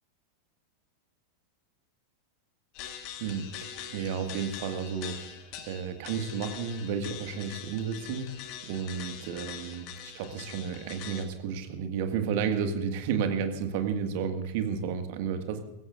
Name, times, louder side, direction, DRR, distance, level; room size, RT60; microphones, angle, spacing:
sound 1, 2.7-11.3, left 10 dB, 40° left, 1.8 m, -43 dB
voice 1, 3.2-15.6, right 6 dB, 50° right, 7 dB, 1.8 m, -32 dB
21.0 x 17.0 x 2.5 m, 1.0 s
figure-of-eight pair, 90°, 0 cm